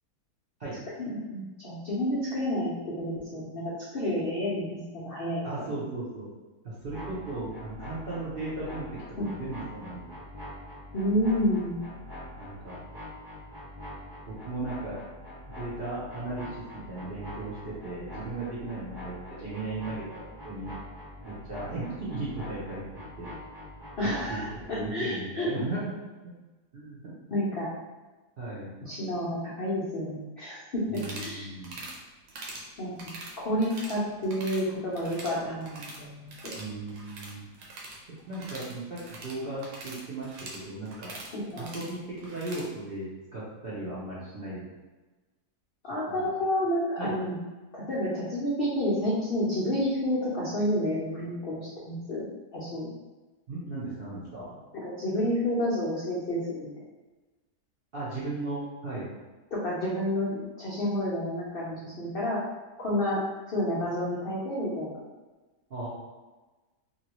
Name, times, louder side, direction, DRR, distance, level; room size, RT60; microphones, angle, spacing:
voice 1, 1.0-5.7 9.2-9.3 10.9-11.8 24.0-25.5 27.3-27.7 28.8-31.5 32.8-36.5 41.3-41.7 45.8-47.4 47.7-52.3 52.5-52.9 54.7-56.7 59.5-62.4 62.8-63.2 63.5-65.0, equal, 70° left, -7 dB, 0.5 m, -30 dB
voice 2, 5.4-6.3 6.6-8.9 9.2-10.1 12.4-12.8 14.3-15.0 15.5-20.7 21.2-22.8 23.2-23.3 24.3-24.4 24.8-26.3 26.7-27.2 28.4-28.7 30.9-31.8 36.5-37.4 38.3-41.1 41.6-44.7 46.1-46.2 47.0-47.2 53.5-54.6 57.9-59.1 65.7-65.9, right 2 dB, 55° right, -9 dB, 0.6 m, -36 dB
sound 1, 6.8-24.9, left 1 dB, 20° right, 0.8 m, -44 dB
sound 2, 30.9-31.4 31.6-32.0 32.3-32.7 33.0-34.0 34.2-34.6 34.9-36.0 36.3-42.7, right 2 dB, 80° right, 1.2 m, -43 dB
2.8 x 2.7 x 2.9 m, 1.2 s
omnidirectional pair, 1.8 m